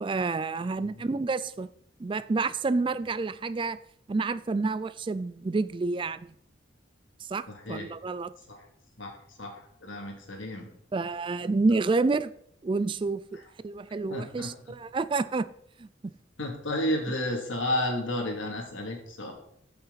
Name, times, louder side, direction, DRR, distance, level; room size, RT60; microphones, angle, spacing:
voice 1, 0.0-1.7 2.0-3.8 4.1-6.3 7.2-8.3 10.9-12.3 12.6-13.4 13.6-15.5 15.8-16.1, right 3 dB, 25° right, 0.3 m, -29 dB
voice 2, 9.8-10.7 14.1-14.5 16.4-19.3, left 1 dB, 80° left, 2.8 m, -31 dB
14.0 x 6.6 x 4.1 m
head